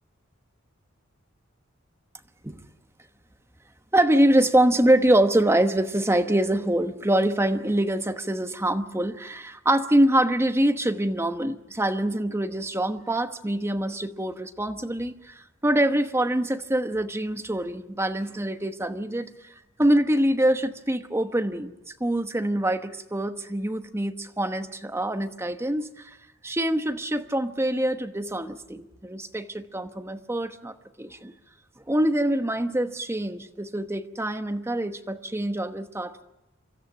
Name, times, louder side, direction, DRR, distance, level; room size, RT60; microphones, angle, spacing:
voice 1, 3.9-19.3 19.8-21.7 22.0-26.1 26.4-31.3 31.9-36.2, right 1 dB, 15° right, 8 dB, 1.1 m, -24 dB
25.0 x 13.5 x 9.7 m, 0.95 s
head